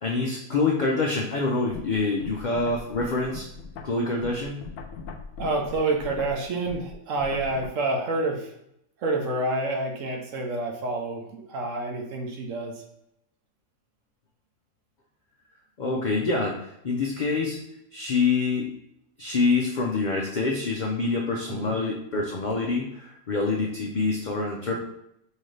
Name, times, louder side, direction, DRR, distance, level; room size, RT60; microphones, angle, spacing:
voice 1, 0.0-3.5 3.8-4.7 15.8-17.6 17.9-18.7 19.2-24.8, left 3 dB, 65° left, -1 dB, 0.4 m, -26 dB
sound 1, 1.7-7.7, left 4 dB, 90° left, 1.1 m, -40 dB
voice 2, 5.4-8.5 9.0-12.8 21.5-21.8, right 2 dB, 65° right, 2 dB, 1.0 m, -28 dB
5.6 x 2.8 x 3.2 m, 0.79 s
omnidirectional pair, 1.5 m